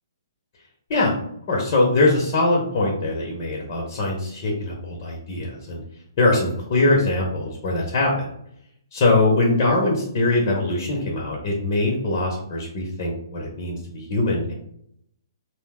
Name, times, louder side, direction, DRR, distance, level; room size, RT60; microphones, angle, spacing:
voice 1, 1.5-5.8 6.2-8.3 8.9-14.5, left 2 dB, 40° left, -2 dB, 0.8 m, -22 dB
2.7 x 2.0 x 3.5 m, 0.72 s
hypercardioid pair, 140°, 2 cm